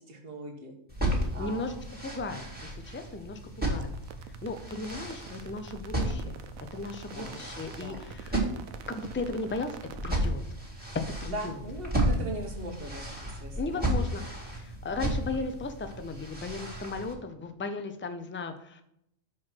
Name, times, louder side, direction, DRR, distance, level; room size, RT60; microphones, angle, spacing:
voice 1, 0.1-0.7 1.3-1.8 7.1-7.5 7.8-8.1 11.3-13.8, right 1 dB, 45° right, 2 dB, 1.6 m, -40 dB
sound 1, 0.9-17.1, right 1 dB, 5° right, 2.0 m, -34 dB
voice 2, 1.4-1.8 2.0-3.4 3.7-4.0 4.4-6.4 6.7-8.4 8.9-10.4 11.2-11.6 13.6-14.2 14.5-18.8, left 3 dB, 15° left, 7 dB, 0.4 m, -36 dB
sound 2, 3.6-10.1, right 8 dB, 85° right, 1.1 m, -47 dB
6.2 x 5.0 x 6.1 m, 0.76 s
omnidirectional pair, 1.4 m